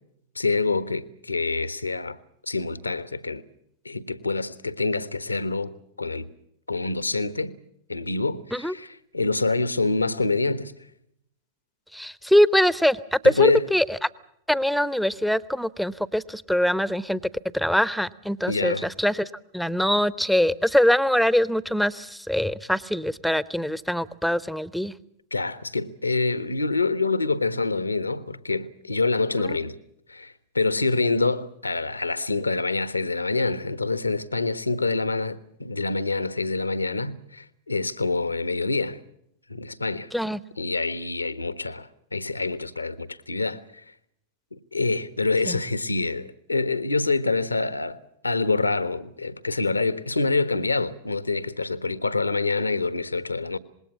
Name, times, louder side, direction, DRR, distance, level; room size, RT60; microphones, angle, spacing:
voice 1, 0.3-2.2 2.5-3.4 3.8-5.7 6.0-6.3 6.7-7.5 7.9-10.7 13.2-13.6 18.5-18.9 25.3-29.8 30.1-39.0 39.5-40.1 40.6-43.8 44.5-53.6, left 3 dB, 80° left, 1.2 m, -26 dB
voice 2, 11.9-13.8 14.5-17.2 17.5-19.3 19.5-24.9 29.4-29.6 40.1-40.4 45.5-45.6, equal, ahead, 0.9 m, -23 dB
26.0 x 21.0 x 7.0 m
figure-of-eight pair, 90°, 0 cm